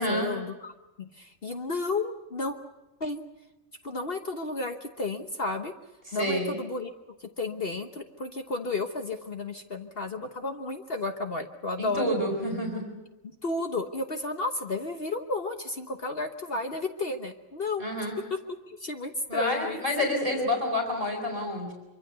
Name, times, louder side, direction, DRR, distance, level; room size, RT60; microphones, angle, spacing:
voice 1, 0.0-2.6 3.0-3.2 3.8-5.7 6.1-6.9 7.2-12.1 13.4-20.1, left 3 dB, 45° left, 6 dB, 1.3 m, -33 dB
voice 2, 6.1-6.5 11.8-12.8 17.8-18.2 19.3-21.7, left 1 dB, 30° right, 1 dB, 4.2 m, -28 dB
24.5 x 24.5 x 6.8 m, 1.0 s
omnidirectional pair, 1.4 m